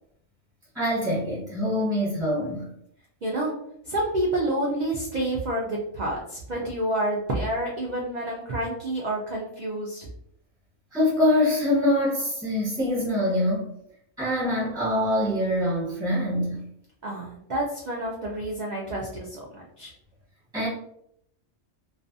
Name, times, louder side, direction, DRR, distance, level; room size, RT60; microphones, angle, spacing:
voice 1, 0.7-2.7 6.6-6.7 10.9-13.7 14.2-16.6 20.5-20.7, left 1 dB, 5° right, -9 dB, 0.9 m, -24 dB
voice 2, 3.2-3.5 3.9-10.1 17.0-19.9, right 1 dB, 75° right, -3 dB, 0.4 m, -29 dB
2.4 x 2.3 x 2.5 m, 0.72 s
omnidirectional pair, 1.3 m